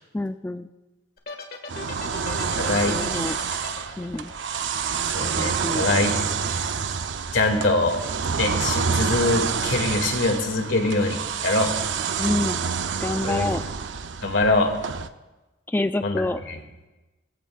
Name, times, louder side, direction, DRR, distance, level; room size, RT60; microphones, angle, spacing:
voice 1, 0.1-0.7 2.6-3.3 4.0-4.3 5.3-5.9 12.2-12.6 13.0-13.6 15.7-16.4, left 2 dB, 10° left, 10 dB, 0.3 m, -27 dB
sound 1, 1.2-5.5, left 4 dB, 55° left, 1.8 m, -38 dB
sound 2, 1.7-15.1, right 6 dB, 75° right, 0.6 m, -28 dB
voice 2, 2.5-3.0 5.1-6.9 7.3-8.0 8.3-11.7 13.2-13.5 14.2-14.7 16.0-16.2 16.5-16.6, left 2 dB, 90° left, 3 dB, 2.3 m, -24 dB
21.5 x 15.5 x 2.4 m, 1.1 s
head